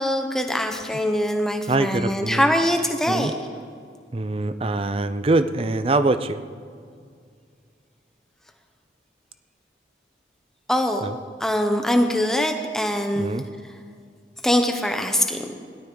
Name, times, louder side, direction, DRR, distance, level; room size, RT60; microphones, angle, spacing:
voice 1, 0.0-3.3 10.7-11.0 11.4-13.3 14.4-15.4, equal, 5° left, 4 dB, 0.9 m, -22 dB
voice 2, 1.7-2.5 3.1-3.3 4.1-6.4 11.0-11.2 13.2-13.4, right 2 dB, 30° right, 11 dB, 0.5 m, -23 dB
17.0 x 12.0 x 3.9 m, 2.1 s
head